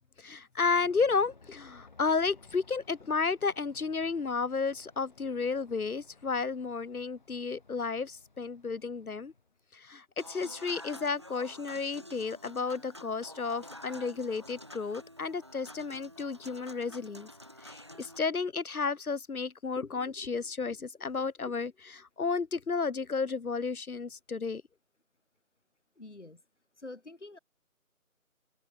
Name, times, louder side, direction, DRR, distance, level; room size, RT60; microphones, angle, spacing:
voice 1, 0.2-9.3 9.7-17.3 17.6-24.6, left 4 dB, 85° left, 0.9 m, -32 dB
Aircraft, 0.6-9.6, left 3 dB, 30° left, 7.9 m, -59 dB
Human voice / Acoustic guitar / Piano, 10.2-18.2, equal, 20° right, 1.3 m, -49 dB
voice 2, 26.0-26.4 26.8-27.4, left 2 dB, 55° left, 6.6 m, -46 dB
figure-of-eight pair, 165°, 43 cm